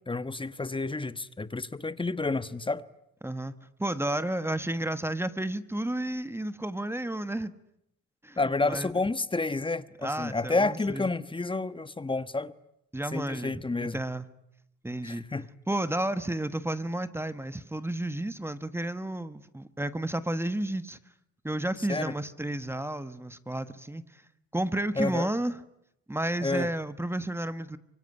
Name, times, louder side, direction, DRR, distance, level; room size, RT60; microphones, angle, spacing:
voice 1, 0.1-2.8 8.4-12.5 13.1-14.0 15.0-15.5 21.9-22.1 25.0-25.3 26.4-26.7, left 3 dB, 15° left, 1.2 m, -30 dB
voice 2, 3.2-3.5 3.8-7.5 8.2-8.4 8.7-8.9 10.0-11.1 12.9-14.3 14.8-15.2 15.7-21.0 21.4-24.2 24.5-25.6 26.1-27.8, right 1 dB, 10° right, 1.4 m, -32 dB
25.0 x 23.5 x 9.9 m
cardioid pair, 90°, 30 cm